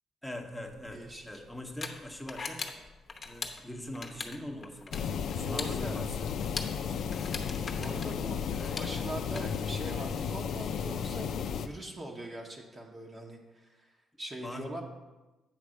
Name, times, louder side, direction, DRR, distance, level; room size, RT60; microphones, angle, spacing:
voice 1, 0.2-2.7 3.2-6.3 8.5-8.7 14.4-14.8, left 1 dB, 5° left, 3 dB, 0.9 m, -43 dB
sound 1, 0.7-9.4, left 4 dB, 35° left, 0.9 m, -42 dB
voice 2, 0.9-1.4 5.2-6.0 7.7-14.8, right 1 dB, 30° right, 0 dB, 1.0 m, -42 dB
sound 2, 4.9-11.7, left 7 dB, 70° left, 0.4 m, -34 dB
8.7 x 3.3 x 6.3 m, 1.1 s
cardioid pair, 90°, 0 cm